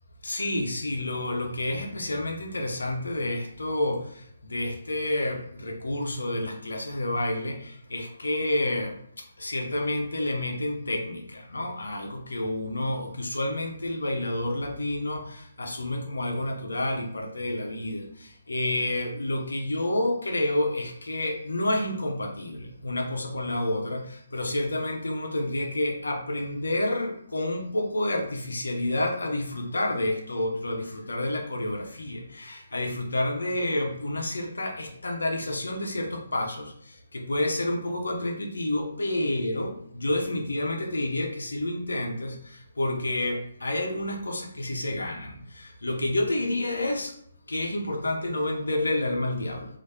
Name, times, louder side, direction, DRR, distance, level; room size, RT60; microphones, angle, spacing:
voice 1, 0.2-4.0 4.5-8.9 9.4-36.7 37.1-47.1 47.5-49.7, left 1 dB, 80° left, 3 dB, 0.7 m, -29 dB
3.2 x 2.5 x 2.7 m, 0.65 s
figure-of-eight pair, 145°, 0 cm